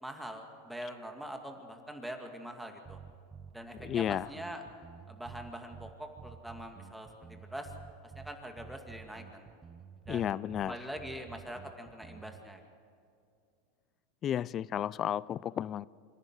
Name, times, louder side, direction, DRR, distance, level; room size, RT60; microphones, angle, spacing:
voice 1, 0.0-3.0 3.5-4.6 5.1-7.7 8.2-9.5 10.1-10.4 10.7-12.6, right 1 dB, 5° right, 2.2 m, -43 dB
sound 1, 2.8-12.4, right 6 dB, 25° right, 0.9 m, -50 dB
voice 2, 3.8-4.3 10.1-10.8 14.2-15.9, left 10 dB, 35° left, 0.4 m, -32 dB
26.5 x 10.5 x 9.6 m
hypercardioid pair, 100°, 0 cm